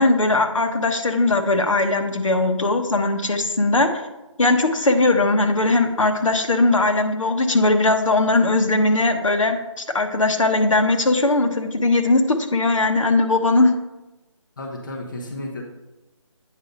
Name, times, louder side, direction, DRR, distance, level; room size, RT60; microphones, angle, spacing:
voice 1, 0.0-4.1 4.4-13.7, left 2 dB, 75° left, 5 dB, 1.1 m, -19 dB
voice 2, 14.6-15.6, left 1 dB, 40° left, -1 dB, 1.1 m, -32 dB
8.7 x 5.1 x 4.0 m, 1.0 s
figure-of-eight pair, 170°, 17 cm